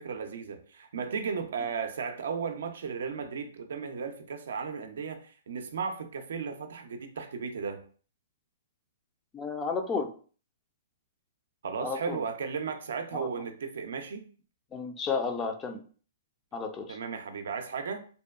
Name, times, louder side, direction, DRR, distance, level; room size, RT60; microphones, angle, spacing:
voice 1, 0.0-7.8 11.6-14.3 16.9-18.1, right 5 dB, 70° right, 0.4 m, -35 dB
voice 2, 9.3-10.1 11.8-12.2 13.1-13.3 14.7-15.8 16.5-17.0, left 4 dB, 20° left, 0.3 m, -32 dB
2.6 x 2.2 x 2.3 m
hypercardioid pair, 135°, 0 cm